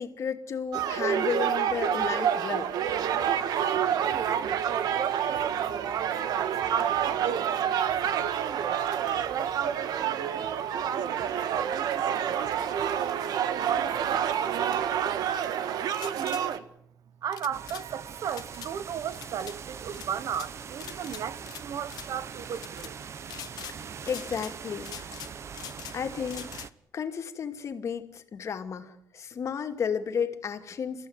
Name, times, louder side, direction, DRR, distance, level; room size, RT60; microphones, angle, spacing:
voice 1, 0.0-2.7 24.1-25.1 25.9-26.6 26.9-31.1, left 7 dB, 50° left, 2.5 m, -33 dB
sound 1, 0.7-16.6, right 9 dB, 85° right, 1.6 m, -28 dB
voice 2, 3.8-8.9 9.3-12.6 13.3-16.7 17.2-23.0, right 8 dB, 65° right, 1.2 m, -36 dB
sound 2, 15.9-16.4 17.3-17.9 18.3-18.7 19.1-19.6 19.9-20.5 20.8-21.6 21.9-22.1 22.6-22.9 23.3-23.8 24.1-24.5 24.8-26.0 26.3-26.7, left 12 dB, 80° left, 0.9 m, -43 dB
sound 3, 17.5-26.7, right 6 dB, 45° right, 1.1 m, -42 dB
30.0 x 15.0 x 9.6 m
cardioid pair, 140°, 7 cm